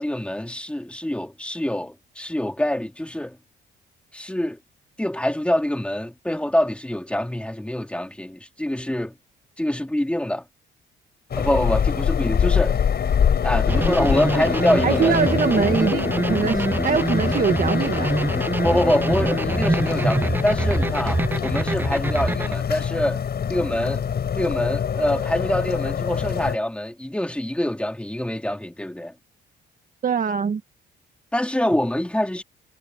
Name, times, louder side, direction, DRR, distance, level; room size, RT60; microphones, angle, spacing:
voice 1, 0.0-3.4 4.1-4.6 5.0-9.1 9.6-10.4 11.4-12.8 13.4-15.2 18.6-23.2 23.5-24.0 24.4-29.1 31.3-32.4, left 1 dB, 5° left, 3.1 m, -25 dB
sound 1, 11.3-26.6, left 8 dB, 55° left, 5.6 m, -25 dB
sound 2, 13.7-22.6, right 2 dB, 10° right, 0.4 m, -25 dB
voice 2, 14.8-18.1 30.0-30.6, right 6 dB, 45° right, 1.6 m, -23 dB
cardioid pair, 90°, 20 cm